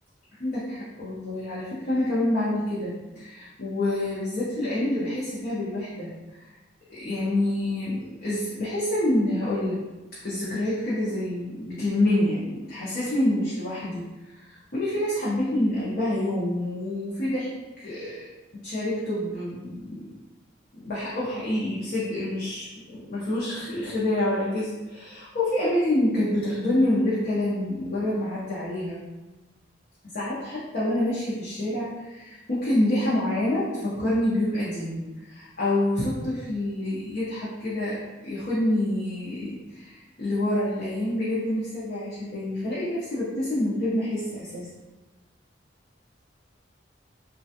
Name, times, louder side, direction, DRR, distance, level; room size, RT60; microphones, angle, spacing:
voice 1, 0.4-6.5 6.9-9.8 10.2-14.1 14.3-17.5 17.8-18.3 18.5-20.1 20.7-29.0 30.0-44.7, left 1 dB, 50° left, -9 dB, 0.7 m, -27 dB
3.2 x 2.3 x 2.7 m, 1.1 s
head